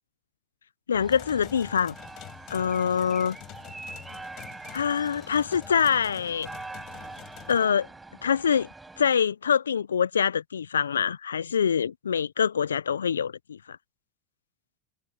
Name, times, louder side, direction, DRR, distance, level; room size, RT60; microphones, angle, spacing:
voice 1, 0.9-2.0 2.5-3.4 4.7-6.5 7.5-7.9 8.2-8.7 9.0-13.6, left 7 dB, 85° left, 0.3 m, -25 dB
sound 1, 0.9-9.1, right 3 dB, 10° right, 4.7 m, -44 dB
sound 2, 1.1-7.6, left 17 dB, 50° left, 6.2 m, -47 dB
hypercardioid pair, 90°, 0 cm